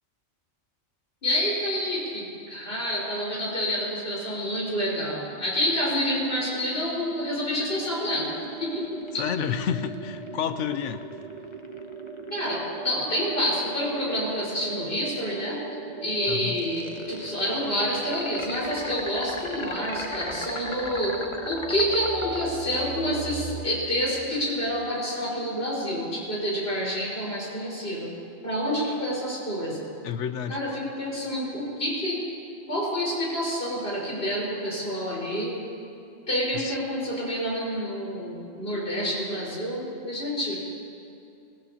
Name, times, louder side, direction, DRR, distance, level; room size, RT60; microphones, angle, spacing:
voice 1, 1.2-8.3 8.6-9.0 12.3-15.6 16.0-28.1 28.4-29.9 30.5-32.2 32.7-35.5 36.3-40.6, equal, 50° left, -6 dB, 5.0 m, -28 dB
sound 1, 6.1-23.7, right 3 dB, 35° right, 0.7 m, -39 dB
sound 2, 7.6-14.9 16.5-22.5, left 2 dB, 30° left, 0.7 m, -39 dB
voice 2, 9.2-11.1 16.2-16.6 30.0-30.8 36.5-36.8, left 8 dB, 75° left, 11 dB, 0.9 m, -30 dB
23.5 x 15.5 x 2.8 m, 2.6 s
omnidirectional pair, 1.3 m